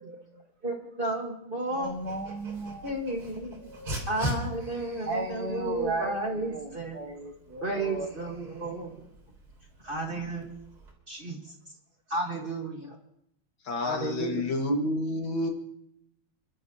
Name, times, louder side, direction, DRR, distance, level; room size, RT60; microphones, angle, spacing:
voice 1, 0.0-0.5 1.7-2.9 3.6-4.1 5.1-8.1, right 2 dB, 55° right, 5 dB, 1.3 m, -36 dB
voice 2, 0.6-2.0 2.8-3.7 4.1-7.0 7.6-9.1 9.8-10.6 11.1-11.4 12.1-13.0 13.8-14.4, right 2 dB, 30° right, 1 dB, 1.4 m, -33 dB
Dog, 1.8-10.9, equal, 70° right, 4.2 m, -41 dB
voice 3, 13.6-15.5, left 1 dB, 65° left, 2 dB, 2.5 m, -29 dB
29.5 x 12.5 x 2.9 m, 0.76 s
omnidirectional pair, 2.4 m